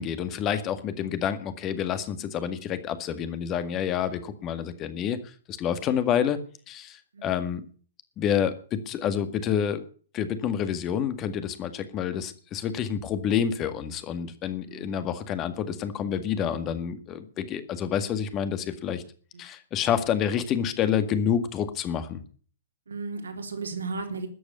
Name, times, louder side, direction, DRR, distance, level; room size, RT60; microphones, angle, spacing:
voice 1, 0.0-6.4 6.7-7.6 8.2-9.8 10.1-19.0 19.4-22.2, left 8 dB, 30° left, 11 dB, 1.9 m, -28 dB
voice 2, 7.1-7.6 14.6-15.1 22.9-24.3, right 4 dB, 75° right, 4 dB, 3.5 m, -35 dB
13.5 x 9.0 x 8.2 m, 0.42 s
figure-of-eight pair, 110°, 0 cm